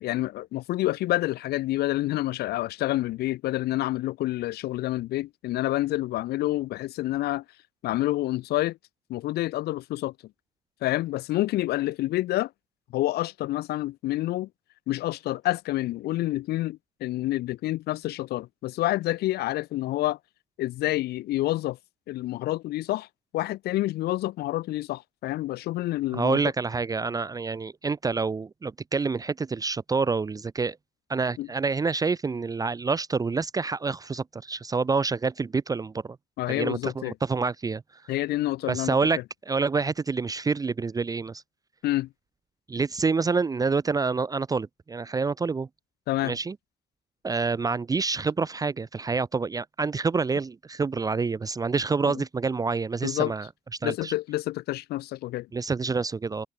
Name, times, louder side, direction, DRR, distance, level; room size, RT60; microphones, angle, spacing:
voice 1, 0.0-7.4 7.8-8.8 9.1-10.1 10.8-12.5 12.9-14.5 14.9-20.2 20.6-21.8 22.1-23.1 23.3-26.4 31.4-31.5 36.4-37.1 38.1-39.0 41.8-42.1 46.1-46.4 52.1-52.2 53.0-53.3 53.8-55.5, left 16 dB, 70° left, 0.7 m, -28 dB
voice 2, 26.1-30.8 31.1-36.2 36.5-38.0 38.7-39.2 39.5-41.4 42.7-45.7 46.2-46.6 47.2-53.5 53.8-54.1 55.5-56.5, right 4 dB, 20° right, 0.7 m, -27 dB
cardioid pair, 110°, 17 cm